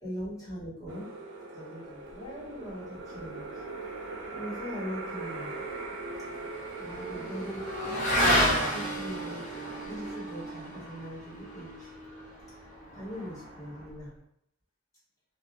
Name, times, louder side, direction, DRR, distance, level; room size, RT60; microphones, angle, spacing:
voice 1, 0.0-1.1 1.5-3.4 4.3-5.5 6.8-9.4 9.8-11.9 12.9-14.1, equal, 15° left, -11 dB, 1.4 m, -40 dB
sound 1, 0.9-10.2, right 3 dB, 65° right, 0.5 m, -41 dB
Motorcycle / Accelerating revving vroom, 5.2-14.0, equal, 40° left, 0.5 m, -32 dB
2.6 x 2.0 x 2.6 m, 0.75 s
head